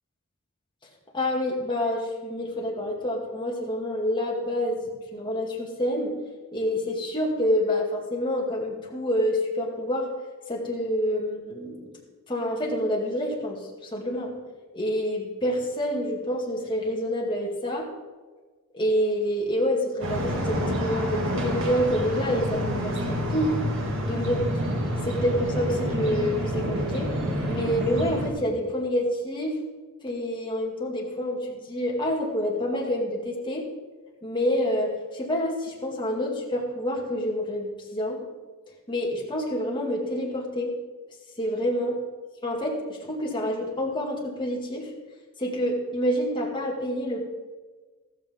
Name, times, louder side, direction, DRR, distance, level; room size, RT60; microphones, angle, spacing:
voice 1, 1.1-6.1 6.5-10.1 10.5-11.9 12.3-14.3 14.7-17.9 18.7-23.6 24.0-24.4 25.0-27.1 27.4-29.5 30.0-33.7 34.2-38.2 38.9-40.7 41.4-41.9 42.4-44.9 45.4-47.2, equal, 20° left, -2 dB, 2.2 m, -27 dB
sound 1, 20.0-28.3, equal, 60° right, 2.2 m, -28 dB
14.0 x 14.0 x 3.7 m, 1.4 s
head